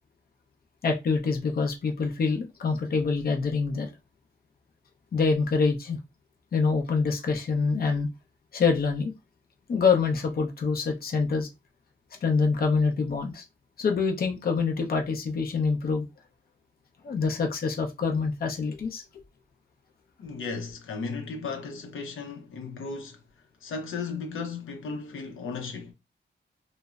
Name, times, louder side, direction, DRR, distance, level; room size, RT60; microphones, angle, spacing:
voice 1, 0.8-3.9 5.1-6.0 6.5-8.1 8.5-9.1 9.7-11.5 12.2-13.4 13.8-16.0 17.0-19.0, left 4 dB, 50° left, 0.6 m, -25 dB
voice 2, 20.2-23.2 23.6-25.9, left 4 dB, 90° left, 0.6 m, -35 dB
3.0 x 2.0 x 2.3 m
wide cardioid pair, 105°, 20 cm